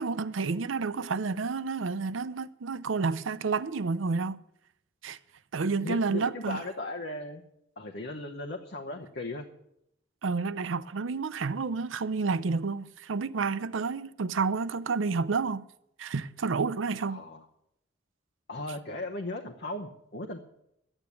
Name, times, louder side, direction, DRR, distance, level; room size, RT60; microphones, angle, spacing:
voice 1, 0.0-4.4 5.0-5.2 5.5-6.6 10.2-15.7 16.0-17.2, right 4 dB, 85° right, 0.6 m, -30 dB
voice 2, 5.8-7.4 7.8-9.4 17.0-17.4 18.5-20.4, left 2 dB, 55° left, 1.0 m, -37 dB
11.5 x 8.9 x 8.2 m
head